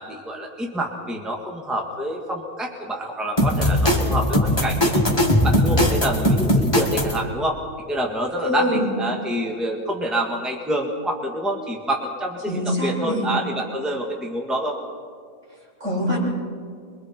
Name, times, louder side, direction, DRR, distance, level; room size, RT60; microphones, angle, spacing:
voice 1, 0.0-5.1 5.4-7.6 7.9-14.8, right 1 dB, ahead, 0 dB, 1.7 m, -27 dB
sound 1, 3.4-7.2, left 1 dB, 15° left, 2.4 m, -19 dB
voice 2, 8.4-8.9 12.4-13.3 15.5-16.2, equal, 55° right, -5 dB, 8.0 m, -25 dB
27.0 x 23.0 x 4.5 m, 2.1 s
omnidirectional pair, 1.5 m